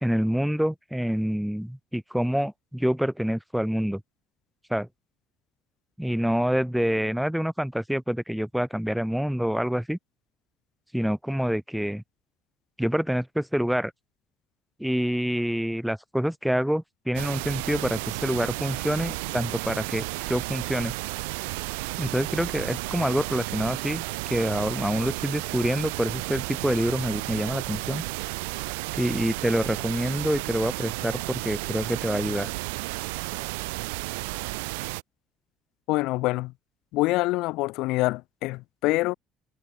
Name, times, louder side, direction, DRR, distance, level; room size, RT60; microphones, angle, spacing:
voice 1, 0.0-4.0 4.7-4.9 6.0-10.0 10.9-12.0 12.8-13.9 14.8-20.9 22.0-24.0 24.3-28.0 28.9-32.5, equal, ahead, 1.9 m, -27 dB
sound 1, 17.1-35.0, right 27 dB, 80° right, 1.4 m, -33 dB
voice 2, 35.9-36.5 36.9-39.1, left 21 dB, 70° left, 3.4 m, -25 dB
hypercardioid pair, 60°, 0 cm